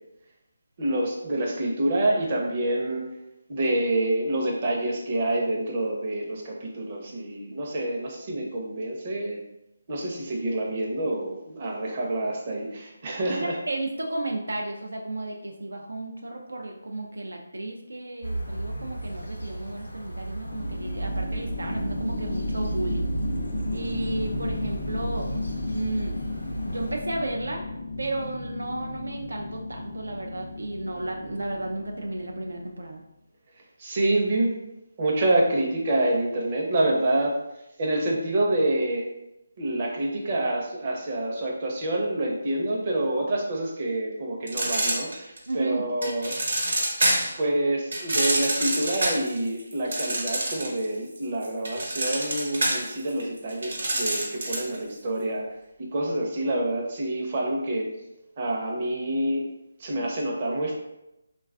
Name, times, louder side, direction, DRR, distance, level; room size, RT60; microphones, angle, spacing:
voice 1, 0.8-3.1 3.5-9.4 9.9-13.5 33.8-34.5 35.0-37.3 37.8-39.1 39.6-46.3 47.4-55.5 55.9-57.9 58.4-59.4 59.8-60.7, right 1 dB, 35° right, -1 dB, 0.6 m, -27 dB
voice 2, 13.3-23.1 23.7-25.3 25.7-26.1 26.6-27.6 28.0-33.0 45.5-45.8, right 2 dB, 85° right, 1 dB, 0.3 m, -33 dB
sound 1, 18.2-26.9, right 2 dB, 90° left, 0.6 m, -34 dB
sound 2, 20.5-32.7, left 3 dB, 35° left, 0.4 m, -34 dB
sound 3, 44.5-45.5 46.0-47.4 47.9-50.8 51.2-54.8, right 1 dB, 65° right, 1.0 m, -26 dB
3.1 x 2.3 x 2.3 m, 0.89 s
figure-of-eight pair, 160°, 0 cm